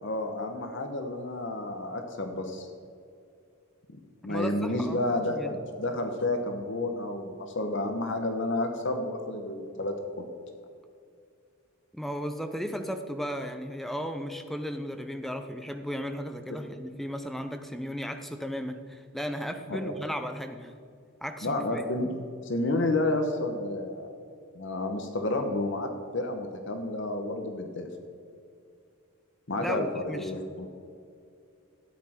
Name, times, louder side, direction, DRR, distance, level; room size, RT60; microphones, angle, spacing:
voice 1, 0.0-2.7 4.2-10.3 19.7-19.9 21.4-22.1 22.4-24.1 24.5-27.9 29.5-30.7, left 2 dB, 60° left, 5 dB, 1.1 m, -30 dB
voice 2, 4.2-5.0 5.4-5.6 11.9-20.7 21.2-21.8 29.6-30.3, equal, ahead, 6 dB, 0.6 m, -35 dB
13.0 x 8.8 x 4.4 m, 2.4 s
head